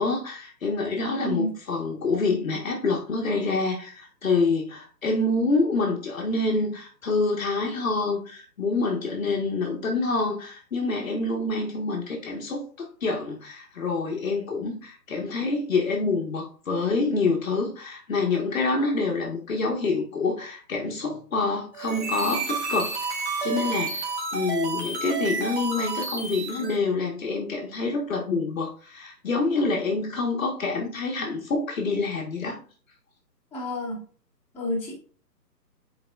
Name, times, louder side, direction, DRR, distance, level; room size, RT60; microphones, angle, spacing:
voice 1, 0.0-32.6, left 3 dB, 50° left, 0 dB, 1.4 m, -27 dB
sound 1, 21.7-26.8, right 3 dB, 40° right, 1.5 m, -30 dB
voice 2, 33.5-34.0 34.5-35.0, left 1 dB, 5° left, -10 dB, 2.1 m, -29 dB
8.6 x 4.7 x 2.3 m, 0.42 s
hypercardioid pair, 155°, 50 cm